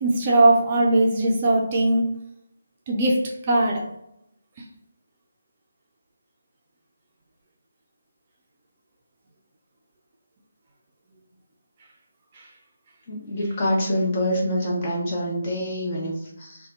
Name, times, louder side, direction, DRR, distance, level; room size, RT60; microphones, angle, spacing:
voice 1, 0.0-2.0 2.9-3.8, right 2 dB, 30° right, -1 dB, 0.5 m, -20 dB
voice 2, 13.1-16.7, equal, 30° left, -4 dB, 1.1 m, -26 dB
2.8 x 2.3 x 4.0 m, 0.80 s
figure-of-eight pair, 150°, 0 cm